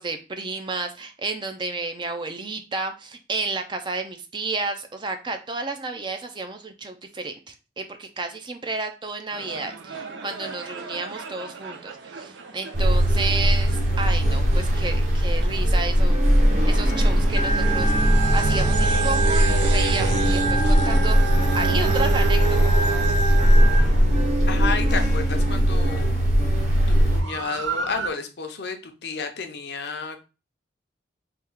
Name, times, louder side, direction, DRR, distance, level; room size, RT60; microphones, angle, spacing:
voice 1, 0.0-16.2 16.6-17.9 18.3-21.2 21.5-22.8, right 3 dB, 25° right, 7 dB, 0.4 m, -31 dB
sound 1, 9.3-24.9 27.0-28.1, right 4 dB, 85° right, 0.6 m, -32 dB
sound 2, 12.7-27.2, equal, 40° right, 1.0 m, -20 dB
Organ, 17.4-23.8, right 3 dB, 25° left, 0.6 m, -29 dB
voice 2, 24.5-26.2 26.9-30.2, left 5 dB, 65° left, 5 dB, 0.6 m, -31 dB
3.5 x 2.3 x 4.4 m, 0.32 s
head